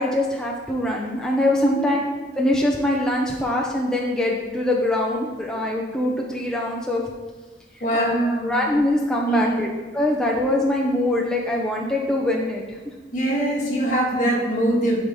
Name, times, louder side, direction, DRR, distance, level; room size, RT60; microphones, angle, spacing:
voice 1, 0.0-2.0 2.4-7.0 7.9-9.7 9.9-12.6, left 1 dB, 5° left, -3 dB, 0.6 m, -23 dB
voice 2, 1.6-1.9 7.8-8.6 9.3-9.6 13.1-14.9, right 1 dB, 50° left, -4 dB, 1.8 m, -22 dB
11.0 x 4.2 x 3.5 m, 1.3 s
head